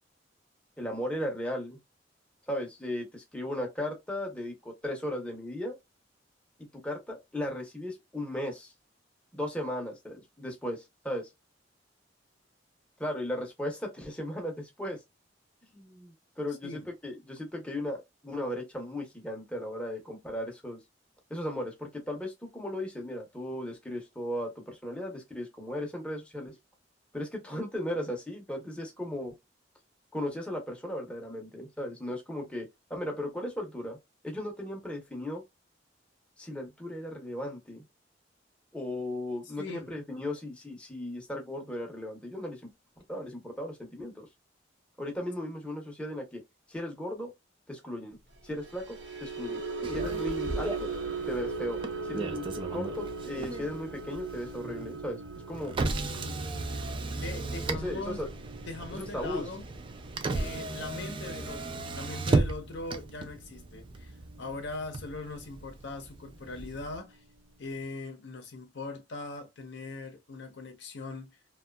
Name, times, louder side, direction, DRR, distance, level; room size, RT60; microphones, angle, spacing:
voice 1, 0.8-1.8 2.5-5.8 6.6-8.7 9.3-11.3 13.0-15.0 15.7-20.8 21.3-26.5 27.1-29.3 30.1-34.0 34.2-35.4 36.4-37.8 38.7-42.7 43.1-44.3 45.0-46.4 46.7-47.3 47.7-48.2 48.4-49.6 49.9-50.9 51.3-55.2 55.5-55.7 57.7-58.3 58.9-59.4, left 1 dB, 5° left, 0.7 m, -36 dB
voice 2, 39.6-39.9 57.1-58.2 58.7-59.6 60.3-67.2 67.6-71.4, left 3 dB, 65° left, 0.6 m, -40 dB
sound 1, 48.5-64.9 65.2-65.5 65.9-66.1, right 4 dB, 75° right, 0.7 m, -40 dB
Motor vehicle (road), 49.8-67.0, right 2 dB, 25° right, 0.3 m, -35 dB
2.6 x 2.2 x 2.2 m
head